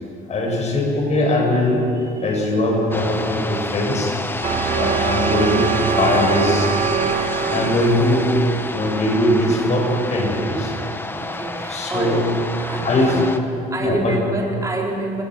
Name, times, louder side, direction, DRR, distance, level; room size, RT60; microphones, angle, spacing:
voice 1, 0.3-4.2 4.7-5.7 6.0-6.7 7.4-8.3 8.7-10.7 11.7-12.2 12.8-13.2 13.8-14.2, left 1 dB, 40° left, 0 dB, 7.2 m, -20 dB
voice 2, 2.0-2.4 3.0-3.1 11.1-12.3 12.6-13.4 13.7-15.2, right 2 dB, 20° right, -1 dB, 4.7 m, -27 dB
sound 1, 2.9-13.4, left 2 dB, 10° left, 1.3 m, -29 dB
sound 2, 4.4-10.4, right 7 dB, 50° right, 1.5 m, -24 dB
28.5 x 19.0 x 6.5 m, 2.7 s
cardioid pair, 110°, 17 cm